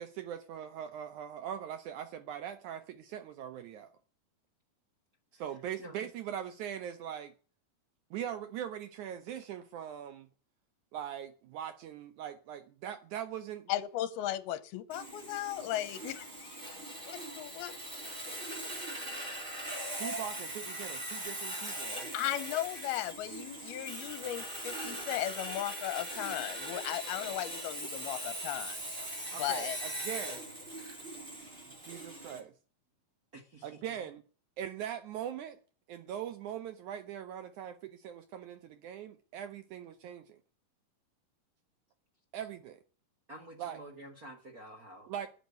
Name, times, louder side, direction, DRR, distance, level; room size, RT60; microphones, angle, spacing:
voice 1, 0.0-3.9 5.3-7.3 8.1-10.3 10.9-13.7 19.9-22.1 29.3-30.5 31.6-32.5 33.6-34.2 34.6-35.6 35.9-40.4 42.3-42.8 43.6-43.8 45.1-45.3, right 10 dB, 80° right, 1.7 m, -41 dB
voice 2, 13.7-16.6 17.1-17.7 22.1-28.8 29.4-29.8, left 13 dB, 85° left, 2.9 m, -36 dB
Sawing, 14.9-32.4, right 1 dB, 15° right, 2.8 m, -41 dB
voice 3, 33.3-33.7 43.3-45.1, right 1 dB, 55° right, 0.9 m, -49 dB
12.5 x 9.2 x 9.4 m
omnidirectional pair, 4.4 m